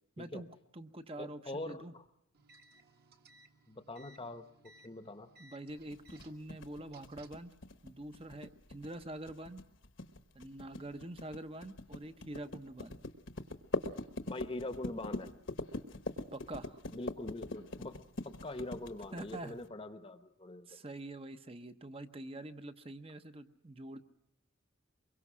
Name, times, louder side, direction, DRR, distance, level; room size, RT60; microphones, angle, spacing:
voice 1, 0.2-0.5 0.7-1.9 5.4-7.5 7.8-9.6 10.3-13.0 16.3-16.8 19.1-19.6 20.7-24.0, right 1 dB, 25° right, 10 dB, 0.9 m, -45 dB
voice 2, 1.2-2.0 3.7-4.5 4.8-5.3 14.3-15.3 16.9-18.0 18.4-20.7, left 2 dB, 25° left, 9 dB, 1.0 m, -43 dB
sound 1, 2.3-7.5, right 2 dB, 50° right, 1.5 m, -62 dB
sound 2, 5.9-19.6, left 2 dB, 60° left, 1.2 m, -42 dB
24.5 x 22.5 x 6.1 m, 0.80 s
head